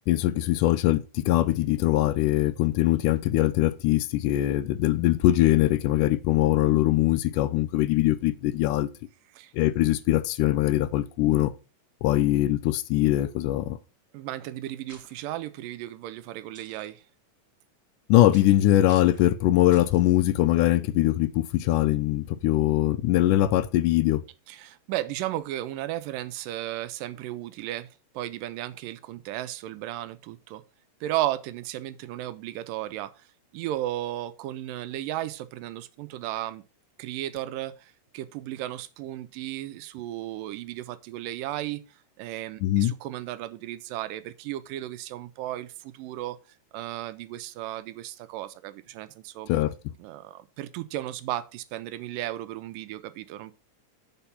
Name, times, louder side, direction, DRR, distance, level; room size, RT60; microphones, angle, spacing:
voice 1, 0.1-8.9 9.5-11.5 12.0-13.8 18.1-24.2 42.6-42.9 49.5-49.7, left 15 dB, 80° left, 2.0 m, -22 dB
voice 2, 14.1-17.0 24.5-27.9 28.1-30.6 31.0-33.3 33.5-36.6 37.0-46.4 46.7-49.5 50.0-53.5, right 14 dB, 85° right, 2.3 m, -34 dB
sound 1, 14.9-15.2 16.5-16.9 18.3-18.6 18.9-19.3 19.7-20.0, right 1 dB, 10° right, 1.2 m, -51 dB
7.0 x 4.4 x 5.6 m
omnidirectional pair, 3.8 m